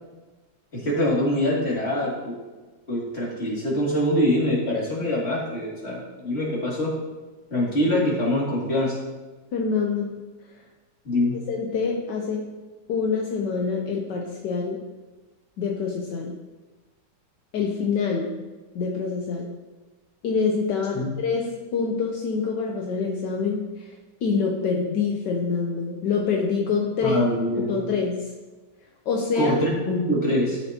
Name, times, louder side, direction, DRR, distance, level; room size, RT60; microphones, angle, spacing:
voice 1, 0.7-2.3 2.9-6.9 7.5-8.9 11.0-11.4 20.9-21.2 27.0-27.9 29.4-30.6, left 1 dB, 35° left, -5 dB, 2.7 m, -24 dB
voice 2, 9.5-10.2 11.5-12.6 12.9-14.9 15.6-16.4 17.5-18.4 18.7-19.5 20.2-23.9 24.2-27.2 27.6-28.3 29.1-29.5, left 5 dB, 75° left, 0 dB, 1.5 m, -26 dB
13.0 x 6.7 x 2.9 m, 1.2 s
omnidirectional pair, 1.9 m